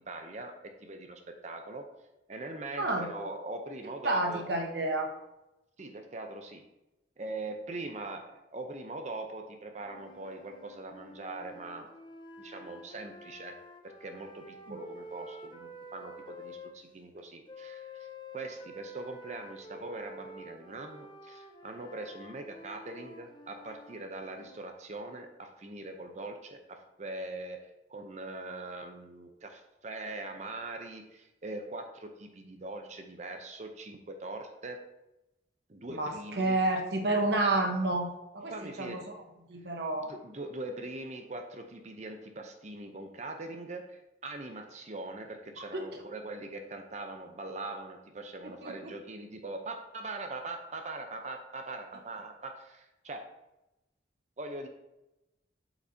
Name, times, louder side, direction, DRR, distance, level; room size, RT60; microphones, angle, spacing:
voice 1, 0.1-1.8 2.3-4.4 5.8-6.6 7.2-11.9 12.4-13.6 13.8-18.1 18.3-27.6 27.9-34.8 35.7-36.6 38.5-39.0 40.0-53.2 54.4-54.7, right 2 dB, 40° right, 5 dB, 0.7 m, -42 dB
voice 2, 2.8-3.1 4.0-5.1 14.7-14.8 35.9-39.2 39.5-40.1 45.7-45.9 48.4-48.9, right 2 dB, 60° right, 3 dB, 1.1 m, -30 dB
sound 1, 9.8-16.7 17.5-24.6, left 1 dB, 25° left, 0.6 m, -49 dB
7.9 x 5.9 x 2.8 m, 0.94 s
head